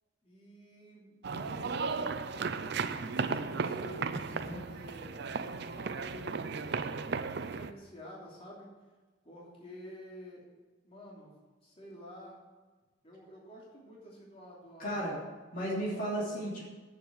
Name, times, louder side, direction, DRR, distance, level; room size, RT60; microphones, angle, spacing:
voice 1, 0.2-5.2 5.4-8.7 9.2-10.5 10.8-12.4 13.0-15.0 15.9-16.0 16.3-16.4, equal, 35° left, -5 dB, 3.0 m, -50 dB
sound 1, 1.2-7.7, right 5 dB, 65° right, 0.6 m, -35 dB
voice 2, 14.8-15.2 15.5-16.6, right 1 dB, 50° left, -5 dB, 3.0 m, -34 dB
9.0 x 7.4 x 8.0 m, 1.3 s
head